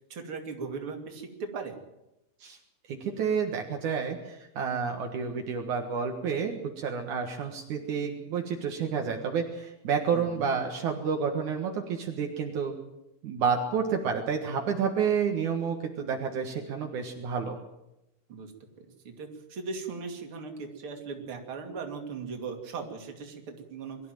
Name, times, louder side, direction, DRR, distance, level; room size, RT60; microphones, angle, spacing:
voice 1, 0.1-1.8 10.1-10.5 18.3-18.5 18.8-24.0, right 4 dB, 45° right, 3 dB, 3.3 m, -38 dB
voice 2, 2.9-12.7 13.2-17.6, right 6 dB, 70° right, 3 dB, 3.0 m, -30 dB
23.0 x 14.0 x 9.2 m, 0.91 s
omnidirectional pair, 3.7 m